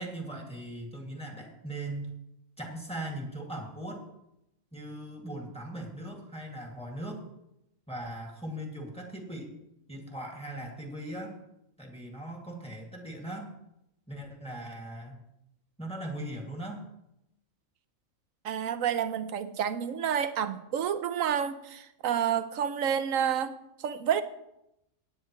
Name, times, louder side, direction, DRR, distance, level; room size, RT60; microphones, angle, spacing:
voice 1, 0.0-2.1 2.6-4.1 4.7-7.2 7.9-9.5 9.9-11.4 11.8-13.5 14.1-15.2 15.8-16.9, right 1 dB, 5° left, 0 dB, 2.3 m, -39 dB
voice 2, 18.4-24.2, right 8 dB, 80° right, 11 dB, 1.2 m, -29 dB
16.5 x 9.7 x 3.2 m, 0.83 s
omnidirectional pair, 1.4 m